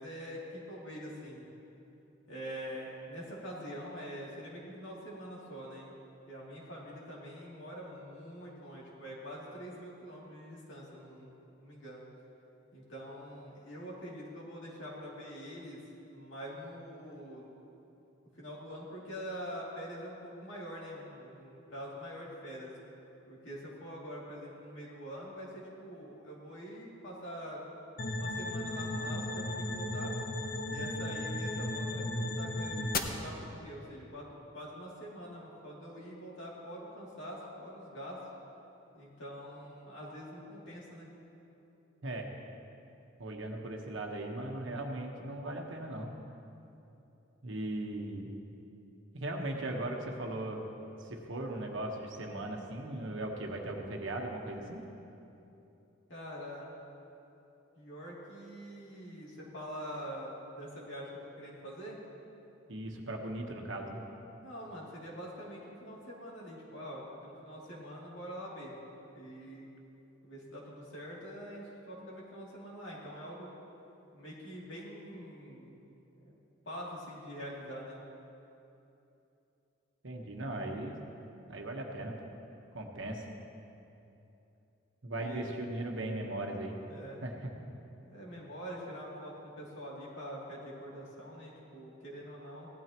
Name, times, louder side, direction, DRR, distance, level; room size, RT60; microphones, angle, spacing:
voice 1, 0.0-1.5 2.3-5.9 6.2-12.1 12.7-15.8 16.1-17.5 18.4-22.7 23.3-27.6 28.1-30.2 30.7-34.3 34.5-38.2 38.9-41.1 56.1-56.7 57.7-62.0 64.4-68.8 69.1-69.7 70.2-73.5 74.1-75.8 76.2-76.3 76.7-78.0 85.2-85.5 86.9-87.2 88.1-92.7, equal, 65° left, -5 dB, 2.7 m, -45 dB
sound 1, 28.0-33.0, left 2 dB, 45° left, 0.7 m, -35 dB
voice 2, 43.2-46.1 47.4-48.3 49.1-50.7 51.0-54.8 62.7-64.0 80.0-81.0 81.5-82.1 82.7-83.3 85.0-86.8 87.2-87.3, right 1 dB, 65° right, 1 dB, 1.3 m, -38 dB
17.0 x 12.5 x 3.0 m, 2.9 s
head